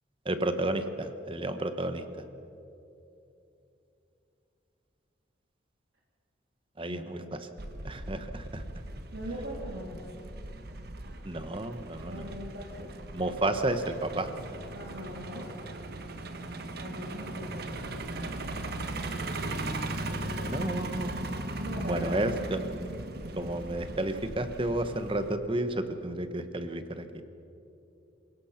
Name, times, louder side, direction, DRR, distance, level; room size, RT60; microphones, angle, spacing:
voice 1, 0.2-2.2 6.8-7.5 7.8-8.6 11.2-12.4 12.8-14.3 20.4-21.1 21.8-22.6 23.3-27.2, right 1 dB, 30° right, 9 dB, 1.2 m, -32 dB
voice 2, 6.8-7.3 9.1-10.0 12.0-12.9 14.7-15.5 16.8-18.4 20.0-21.2 21.6-22.4, equal, 90° right, -4 dB, 3.4 m, -41 dB
Truck, 7.6-25.3, right 2 dB, 60° right, 1.3 m, -38 dB
27.5 x 17.5 x 5.9 m, 2.8 s
head